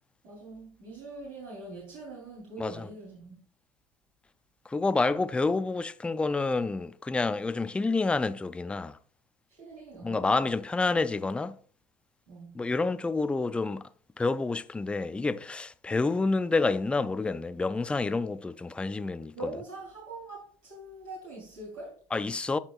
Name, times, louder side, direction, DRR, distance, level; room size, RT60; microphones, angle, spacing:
voice 1, 0.2-3.4 9.5-10.4 12.3-12.6 15.9-16.0 19.3-22.0, right 2 dB, 50° right, 3.2 m, -43 dB
voice 2, 2.6-2.9 4.7-9.0 10.0-11.6 12.5-13.8 14.2-19.5 22.1-22.6, left 3 dB, 5° left, 0.3 m, -28 dB
11.5 x 4.4 x 2.4 m
hypercardioid pair, 95°, 18 cm